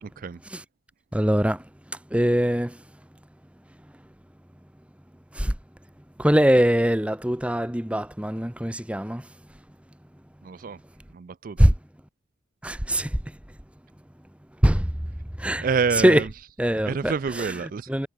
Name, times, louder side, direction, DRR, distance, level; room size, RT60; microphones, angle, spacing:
voice 1, 0.0-0.4 10.4-10.8 11.1-11.6 15.6-16.3 16.9-17.9, right 5 dB, 40° right, 0.3 m, -27 dB
voice 2, 1.1-1.6 2.1-2.8 5.3-5.5 6.2-9.3 11.6-11.7 12.6-13.2 14.6-14.9 15.4-16.3 16.6-18.1, equal, 5° right, 0.9 m, -22 dB
head